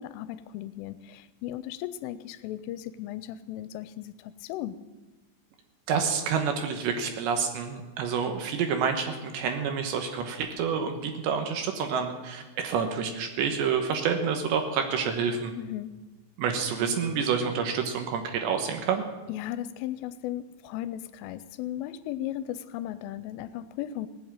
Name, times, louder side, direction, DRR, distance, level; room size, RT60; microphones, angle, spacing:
voice 1, 0.0-4.8 15.6-15.9 19.3-24.1, left 12 dB, 85° left, 14 dB, 3.1 m, -36 dB
voice 2, 5.9-15.5 16.4-19.0, right 6 dB, 70° right, 6 dB, 3.0 m, -28 dB
19.0 x 8.3 x 8.9 m, 1.2 s
omnidirectional pair, 5.8 m